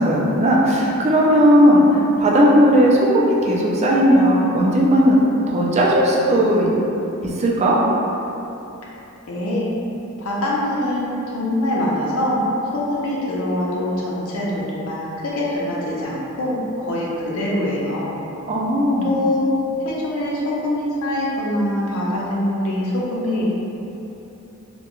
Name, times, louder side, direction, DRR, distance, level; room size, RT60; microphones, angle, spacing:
voice 1, 0.0-5.2 5.5-6.7 7.2-7.8 18.5-19.1, equal, 30° right, -3 dB, 0.3 m, -16 dB
voice 2, 9.3-9.7 10.2-12.4 12.7-16.6 16.9-18.2 19.0-19.5 19.8-23.5, left 1 dB, 85° left, -4 dB, 0.5 m, -24 dB
2.3 x 2.2 x 2.9 m, 2.9 s
head